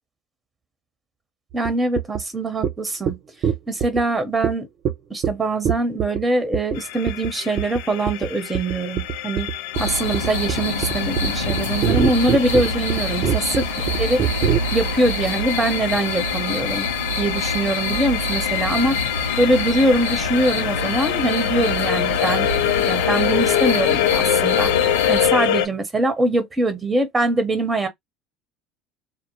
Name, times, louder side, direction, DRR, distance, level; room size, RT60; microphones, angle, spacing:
voice 1, 1.5-3.2 3.7-4.7 5.1-9.5 9.8-13.7 14.0-14.2 14.7-16.9 17.2-19.0 19.4-22.5 22.8-27.9, right 2 dB, 20° right, 0.8 m, -23 dB
sound 1, 1.7-1.8 2.0-2.2 2.6-2.7 3.1-3.2 3.4-4.0 4.4-4.5 4.9-5.0 5.2-5.3 5.7-6.2 6.5-6.8 7.1-7.3 7.6-7.8 8.1-8.3 8.5-14.6, right 9 dB, 55° right, 0.5 m, -22 dB
sound 2, 6.8-25.7, left 11 dB, 70° left, 0.3 m, -25 dB
sound 3, 9.7-25.3, left 2 dB, 90° left, 0.8 m, -27 dB
2.2 x 2.1 x 2.9 m
hypercardioid pair, 65°, 0 cm